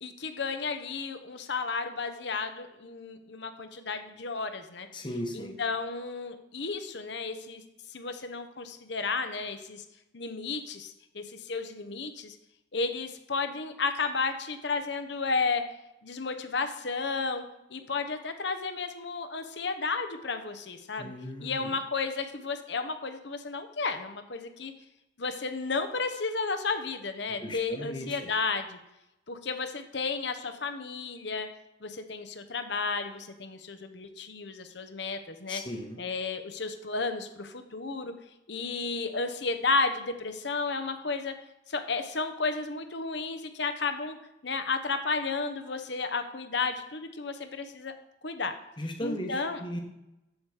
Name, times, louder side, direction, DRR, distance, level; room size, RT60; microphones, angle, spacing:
voice 1, 0.0-4.9 5.3-7.6 7.9-9.8 10.1-12.4 12.7-15.6 16.0-17.4 17.7-21.1 21.4-24.7 25.2-28.8 29.3-31.5 31.8-35.6 36.0-38.1 38.5-41.3 41.7-44.2 44.4-47.9 48.2-48.5 49.0-49.6, left 4 dB, 60° left, 8 dB, 0.9 m, -33 dB
voice 2, 4.9-5.6 21.0-21.7 27.4-28.3 35.5-36.0 48.8-49.8, equal, 25° left, 3 dB, 1.2 m, -37 dB
14.0 x 5.1 x 4.9 m, 0.90 s
head